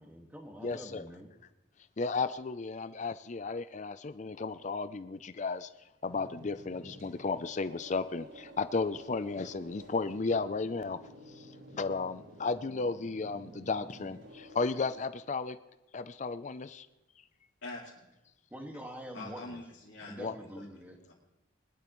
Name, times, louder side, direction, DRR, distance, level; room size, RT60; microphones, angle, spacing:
voice 1, 0.0-1.3 18.5-19.6 20.0-21.0, equal, 10° right, 2 dB, 1.8 m, -45 dB
voice 2, 0.6-1.1 2.0-5.7 6.0-11.0 11.3-15.6 15.9-16.9 20.2-20.3, left 4 dB, 35° left, 12 dB, 0.4 m, -34 dB
sound 1, 6.0-15.0, right 1 dB, 75° right, 5.3 m, -51 dB
voice 3, 19.1-21.1, left 2 dB, 80° left, -6 dB, 2.6 m, -45 dB
21.0 x 12.0 x 3.1 m, 0.99 s
head